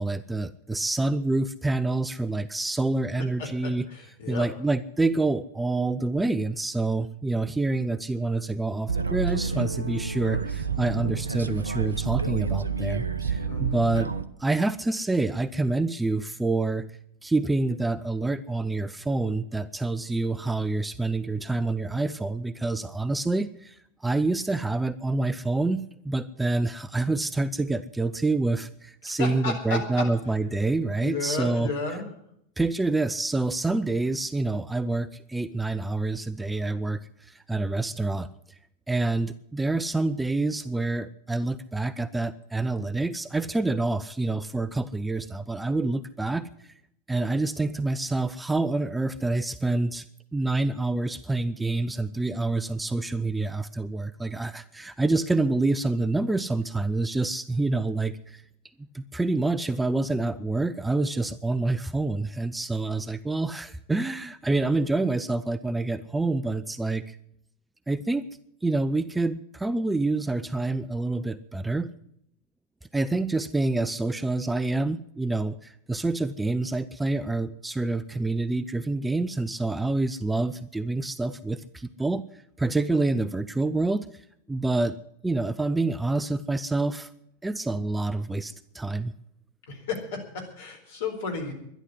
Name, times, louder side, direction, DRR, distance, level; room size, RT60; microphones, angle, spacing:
voice 1, 0.0-3.9 4.3-14.1 14.4-16.9 17.2-31.7 32.6-38.3 38.9-46.7 47.1-50.1 50.3-58.4 58.9-67.2 67.9-68.2 68.6-71.9 72.9-82.2 82.6-85.0 85.2-87.1 87.4-89.1, right 2 dB, 5° right, 15 dB, 0.5 m, -27 dB
voice 2, 3.4-4.5 13.4-13.8 29.1-29.8 31.0-32.1 89.7-91.5, left 4 dB, 55° left, 3 dB, 4.2 m, -33 dB
sound 1, 8.9-14.2, right 5 dB, 75° right, 0.7 m, -29 dB
12.0 x 11.0 x 9.7 m, 0.74 s
figure-of-eight pair, 90°, 0 cm